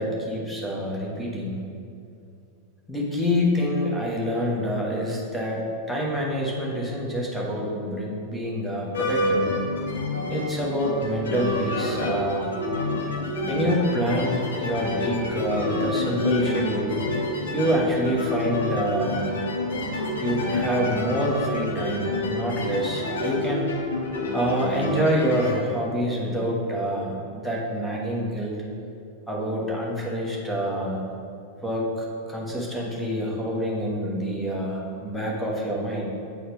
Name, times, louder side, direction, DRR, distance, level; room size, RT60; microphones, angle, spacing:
voice 1, 0.0-1.6 2.9-9.5 10.3-12.5 13.5-17.0 17.5-19.2 20.2-23.7 24.3-28.5 29.3-31.0 31.6-36.0, equal, ahead, -4 dB, 1.2 m, -27 dB
sound 1, 8.9-25.5, left 2 dB, 65° left, 0.8 m, -28 dB
7.9 x 4.2 x 3.4 m, 2.5 s
figure-of-eight pair, 90°, 0 cm